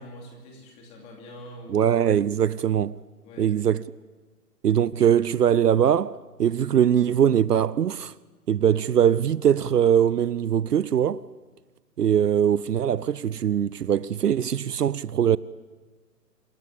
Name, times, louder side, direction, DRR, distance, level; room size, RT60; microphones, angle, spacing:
voice 1, 0.0-1.9 3.2-3.5, equal, 15° left, 2.8 m, -44 dB
voice 2, 1.7-3.0 3.4-3.8 4.6-8.1 8.5-11.3 12.0-15.4, right 9 dB, 70° right, 0.7 m, -21 dB
26.5 x 13.0 x 8.5 m
hypercardioid pair, 160°, 49 cm